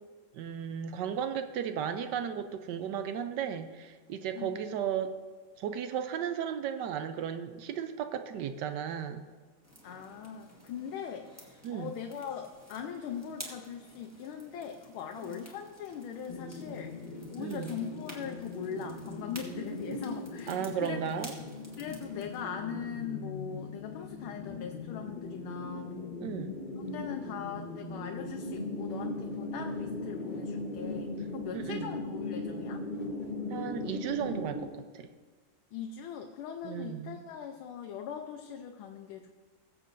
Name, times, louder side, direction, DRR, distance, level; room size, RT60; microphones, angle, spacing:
voice 1, 0.3-5.1 5.6-9.2 11.6-12.0 15.2-15.3 17.4-17.8 20.5-21.3 26.2-26.5 31.5-31.9 33.5-35.1 36.6-37.2, right 8 dB, 70° right, 9 dB, 1.0 m, -35 dB
sound 1, 9.6-22.5, equal, 10° right, 1.2 m, -52 dB
voice 2, 9.8-17.0 17.3-21.0 21.8-26.2 26.8-32.8 35.7-39.3, left 7 dB, 80° left, 3 dB, 1.5 m, -41 dB
sound 2, 16.3-34.6, left 2 dB, 40° left, 0.7 m, -39 dB
21.0 x 7.4 x 2.5 m, 1.4 s
omnidirectional pair, 2.3 m